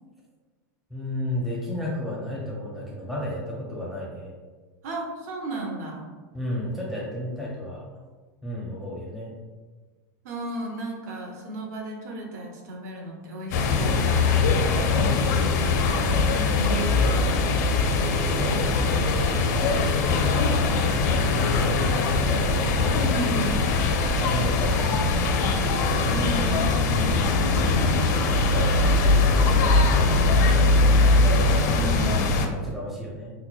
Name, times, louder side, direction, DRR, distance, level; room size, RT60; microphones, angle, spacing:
voice 1, 0.9-4.4 6.3-7.8 8.4-9.3 14.8-15.4 16.9-17.1 17.9-19.8 21.5-22.0 22.3-23.2 24.2-25.3 26.8-27.2 28.5-29.6 30.3-30.7 31.0-31.9 32.5-33.3, left 1 dB, ahead, -5 dB, 0.5 m, -33 dB
voice 2, 4.8-6.1 10.2-14.0 16.3-17.0 23.0-23.7 26.1-27.3 31.7-32.3, right 2 dB, 65° right, 0 dB, 0.8 m, -33 dB
sound 1, 13.5-32.5, left 3 dB, 65° left, 0.5 m, -21 dB
5.7 x 2.1 x 2.3 m, 1.4 s
supercardioid pair, 170°, 10 cm